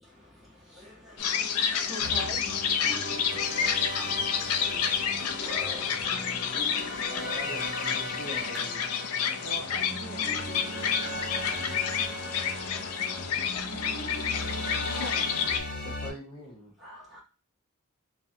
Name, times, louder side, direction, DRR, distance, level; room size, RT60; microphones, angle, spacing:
voice 1, 0.7-3.2 3.6-4.2 4.6-4.9 5.4-6.0 6.4-7.3 7.6-7.9 14.9-15.2 16.8-17.2, left 1 dB, ahead, 1.5 m, -43 dB
sound 1, 1.2-15.6, left 7 dB, 85° left, 0.4 m, -30 dB
sound 2, 2.0-16.1, left 1 dB, 40° left, 1.3 m, -37 dB
voice 2, 4.7-5.4 9.4-12.1, right 3 dB, 50° right, 0.4 m, -47 dB
voice 3, 7.1-8.7 15.8-16.7, right 1 dB, 25° left, 1.1 m, -42 dB
3.0 x 2.4 x 2.7 m
head